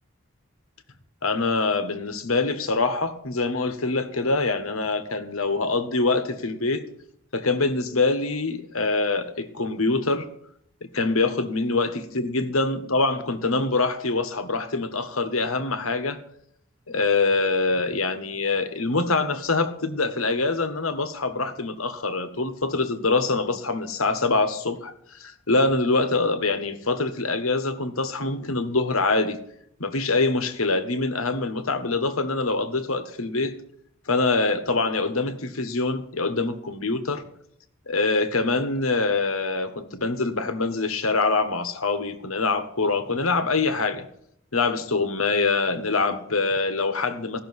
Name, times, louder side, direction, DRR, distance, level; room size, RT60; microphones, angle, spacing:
voice 1, 1.2-6.8 7.3-10.3 10.8-16.2 16.9-29.4 29.8-33.5 34.1-37.2 37.9-44.1 44.5-47.4, left 3 dB, 85° left, 1.5 m, -24 dB
15.5 x 6.6 x 9.7 m
head